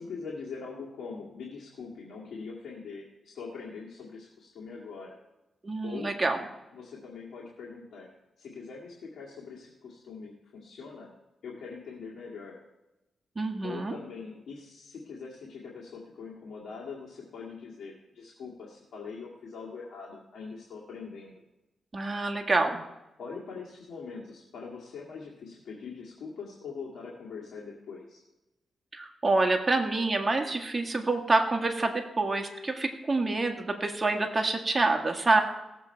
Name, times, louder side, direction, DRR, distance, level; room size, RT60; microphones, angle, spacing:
voice 1, 0.0-5.1 5.8-6.1 6.7-8.1 8.4-11.1 11.4-12.6 13.6-21.3 23.2-28.2, left 5 dB, 80° left, -5 dB, 2.0 m, -42 dB
voice 2, 5.6-6.5 13.3-14.0 21.9-22.8 28.9-35.4, right 3 dB, 30° right, 3 dB, 1.7 m, -27 dB
18.0 x 7.6 x 4.5 m, 0.99 s
cardioid pair, 80°, 0 cm